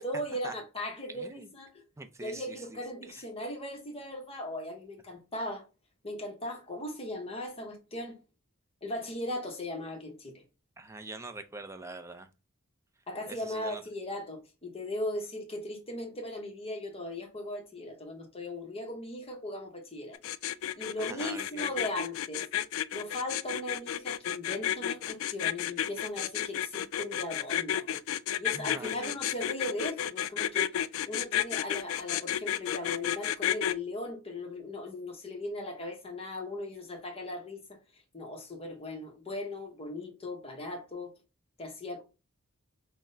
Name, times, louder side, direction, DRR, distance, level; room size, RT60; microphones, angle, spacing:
voice 1, 0.0-1.7 2.2-5.6 6.0-8.2 8.8-10.4 13.1-20.2 20.8-22.5 22.9-28.0 28.4-30.7 31.1-37.8 38.1-41.1 41.6-42.0, left 1 dB, 25° left, 0.9 m, -38 dB
voice 2, 1.1-1.5 2.0-3.3 10.8-12.3 13.3-13.8 21.0-21.7 28.5-29.2, right 2 dB, 15° right, 0.4 m, -44 dB
sound 1, 20.1-33.7, left 11 dB, 65° left, 0.3 m, -31 dB
5.8 x 2.1 x 2.6 m
head